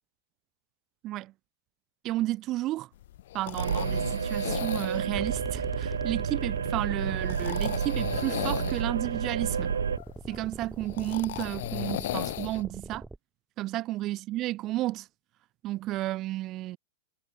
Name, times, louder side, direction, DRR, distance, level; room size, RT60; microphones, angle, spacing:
voice 1, 2.0-2.9 3.3-9.7 10.3-13.0 13.6-15.1 15.6-16.8, right 16 dB, 35° right, 4.6 m, -32 dB
sound 1, 3.0-12.6, left 14 dB, 60° left, 1.8 m, -37 dB
sound 2, 3.6-10.0, right 6 dB, 75° right, 4.4 m, -30 dB
sound 3, 5.2-13.2, right 2 dB, 10° right, 3.1 m, -43 dB
figure-of-eight pair, 100°, 0 cm